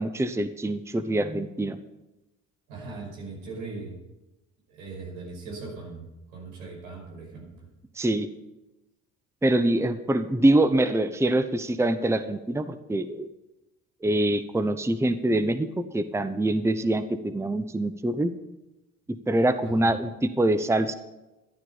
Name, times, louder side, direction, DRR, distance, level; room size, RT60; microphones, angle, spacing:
voice 1, 0.0-1.8 8.0-8.3 9.4-13.3 14.0-18.3 19.3-20.9, right 1 dB, 5° right, 11 dB, 0.9 m, -24 dB
voice 2, 2.7-4.0 4.7-7.7 19.6-19.9, right 3 dB, 80° right, -1 dB, 5.6 m, -39 dB
12.0 x 12.0 x 5.6 m, 1.0 s
hypercardioid pair, 60°, 42 cm